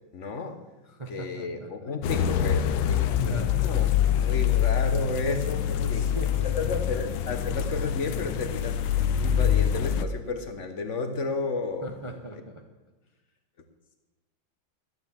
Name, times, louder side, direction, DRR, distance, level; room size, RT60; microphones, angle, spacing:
voice 1, 0.1-0.6 1.1-6.1 6.4-12.2, left 3 dB, 45° left, 8 dB, 1.2 m, -32 dB
voice 2, 1.0-1.9 3.2-3.6 5.8-6.5 11.8-12.6, right 2 dB, 20° right, 3 dB, 0.8 m, -39 dB
sound 1, 2.0-10.0, left 9 dB, 85° left, 1.6 m, -25 dB
12.0 x 11.0 x 7.4 m, 1.2 s
omnidirectional pair, 2.2 m